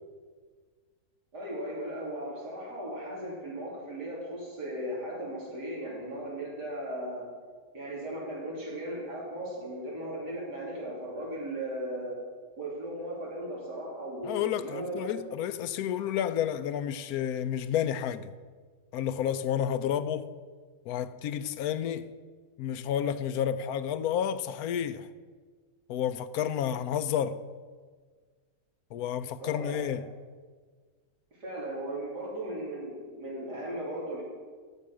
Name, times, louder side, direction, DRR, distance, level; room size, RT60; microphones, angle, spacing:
voice 1, 1.3-7.3 7.7-12.2 12.6-15.1 29.4-29.8 31.4-34.2, right 1 dB, 75° right, 3.7 m, -37 dB
voice 2, 14.2-18.3 18.9-20.3 20.9-22.1 22.6-25.1 25.9-27.4 28.9-30.0, left 9 dB, 70° left, 1.0 m, -30 dB
12.0 x 7.7 x 6.2 m
omnidirectional pair, 1.8 m